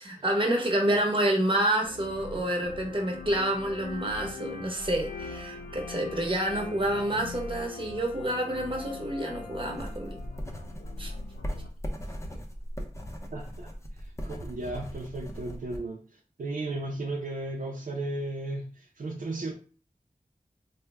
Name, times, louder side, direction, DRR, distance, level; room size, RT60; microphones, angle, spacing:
voice 1, 0.0-10.2 11.0-11.1, right 1 dB, 40° right, 1.0 m, -28 dB
sound 1, 1.8-11.7, left 4 dB, 85° left, 0.5 m, -41 dB
sound 2, 9.7-15.8, equal, 20° left, 0.6 m, -38 dB
voice 2, 13.3-19.5, right 2 dB, 75° right, 0.5 m, -35 dB
3.3 x 2.1 x 3.4 m
wide cardioid pair, 50°, 14 cm